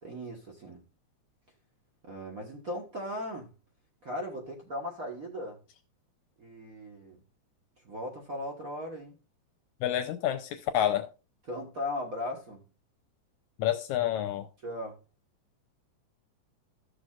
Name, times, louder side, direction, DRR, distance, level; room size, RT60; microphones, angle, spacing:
voice 1, 0.0-0.8 2.0-3.5 4.0-5.6 6.4-7.2 7.8-9.1 11.5-12.6 14.6-15.0, left 1 dB, 55° right, 0.9 m, -37 dB
voice 2, 9.8-11.1 13.6-14.5, left 11 dB, 75° left, 1.9 m, -28 dB
14.5 x 6.6 x 2.4 m
omnidirectional pair, 3.6 m